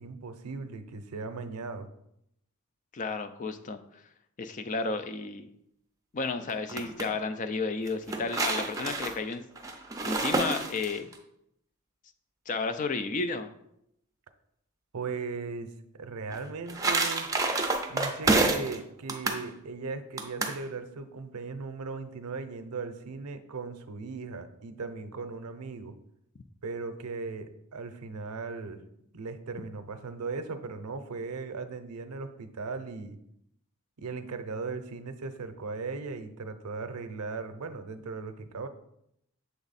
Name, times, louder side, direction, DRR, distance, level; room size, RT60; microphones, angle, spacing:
voice 1, 0.0-1.9 14.9-17.3 17.9-25.9 26.6-33.2 34.0-38.7, right 4 dB, 90° right, 9 dB, 0.6 m, -38 dB
voice 2, 2.9-3.8 4.4-5.5 6.1-9.4 10.0-11.1 12.5-13.5 18.4-18.5, left 4 dB, 35° left, 9 dB, 0.4 m, -32 dB
sound 1, 6.5-7.1 7.9-11.2 16.3-18.8 19.1-19.4 20.2-20.6, right 3 dB, 15° right, 0.5 m, -28 dB
7.1 x 3.4 x 4.1 m, 0.78 s
head